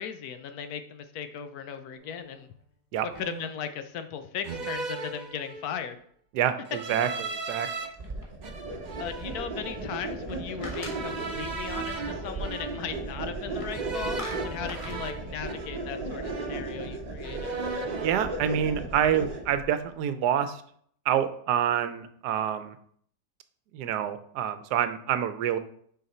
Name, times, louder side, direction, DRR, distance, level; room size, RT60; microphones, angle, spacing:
voice 1, 0.0-2.5 3.2-6.0 9.0-17.6, left 8 dB, 70° left, 9 dB, 1.1 m, -37 dB
sound 1, 2.0-2.3 3.1-3.7 4.4-5.9 6.7-7.9 8.4-10.0 10.8-13.1 13.7-16.0 16.2-17.0 17.2-18.2, right 4 dB, 55° right, 0.4 m, -37 dB
voice 2, 6.3-7.7 18.0-20.6 21.1-22.8 23.7-25.6, right 9 dB, 80° right, 11 dB, 1.2 m, -27 dB
sound 2, 7.6-8.6 10.0-11.6 13.4-13.7 14.0-15.0, left 1 dB, 20° left, 1.4 m, -43 dB
sound 3, 8.0-19.6, right 2 dB, 30° right, 0.9 m, -36 dB
6.5 x 4.6 x 4.2 m, 0.63 s
omnidirectional pair, 1.8 m